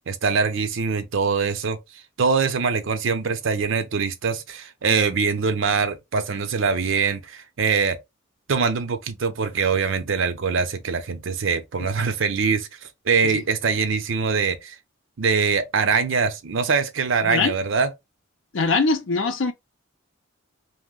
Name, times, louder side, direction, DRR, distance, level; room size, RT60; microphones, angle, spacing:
voice 1, 0.1-1.8 2.2-8.0 8.5-14.8 15.2-17.9, right 5 dB, 75° right, 0.6 m, -23 dB
voice 2, 17.2-17.5 18.5-19.5, left 4 dB, 70° left, 0.5 m, -22 dB
2.7 x 2.1 x 3.6 m
head